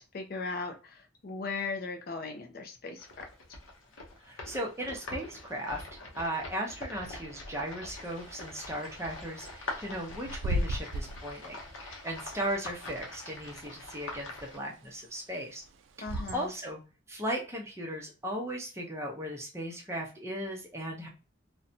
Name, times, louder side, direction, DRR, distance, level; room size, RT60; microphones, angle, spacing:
voice 1, 0.0-3.3 16.0-16.5, left 4 dB, 50° left, 5 dB, 0.4 m, -38 dB
sound 1, 3.0-14.6, left 2 dB, 85° left, 0.7 m, -44 dB
voice 2, 4.3-5.9 6.2-15.6 16.0-16.8 17.1-21.1, right 1 dB, 15° right, -1 dB, 0.6 m, -37 dB
Bird / Wind, 8.0-16.7, equal, 75° right, 0.3 m, -38 dB
2.6 x 2.1 x 2.6 m, 0.32 s
head